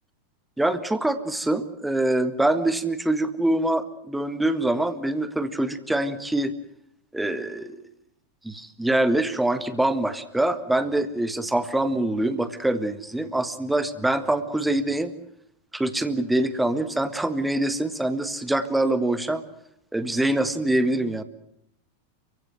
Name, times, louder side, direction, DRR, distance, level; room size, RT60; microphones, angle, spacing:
voice 1, 0.6-6.5 7.1-7.8 8.4-15.1 15.7-19.4 19.9-21.2, right 1 dB, 5° right, 12 dB, 1.6 m, -24 dB
29.5 x 16.0 x 7.8 m, 0.77 s
figure-of-eight pair, 90°, 0 cm